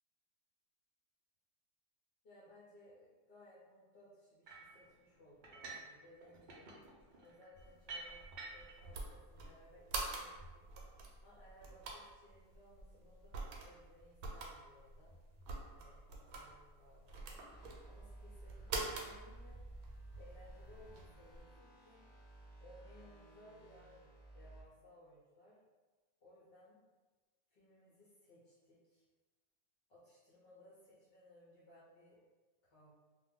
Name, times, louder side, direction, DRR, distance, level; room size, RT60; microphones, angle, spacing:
voice 1, 2.2-6.7 7.2-10.6 11.2-15.1 15.7-17.4 17.9-19.6 20.2-22.0 22.6-25.6 26.2-26.8 27.5-29.0 29.9-32.2 32.6-32.9, left 1 dB, 55° left, -8 dB, 0.7 m, -62 dB
sound 1, 4.4-4.8 5.4-5.9 6.2-8.8, right 3 dB, 70° right, 0.4 m, -50 dB
sound 2, 7.5-21.4, right 3 dB, 85° right, 1.1 m, -47 dB
sound 3, 17.5-24.6, right 2 dB, 25° left, 0.9 m, -56 dB
2.5 x 2.2 x 3.5 m, 1.3 s
omnidirectional pair, 1.5 m